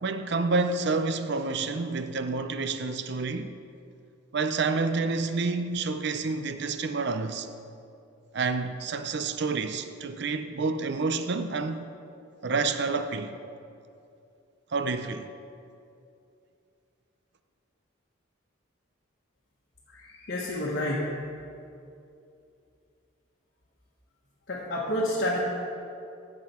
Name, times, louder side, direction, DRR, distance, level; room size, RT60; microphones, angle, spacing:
voice 1, 0.0-3.5 4.3-7.5 8.3-11.9 12.4-13.4 14.7-15.3, right 4 dB, 55° right, 0.5 m, -29 dB
voice 2, 19.9-21.2 24.5-25.4, left 1 dB, 55° left, 1.3 m, -29 dB
13.5 x 7.6 x 4.3 m
head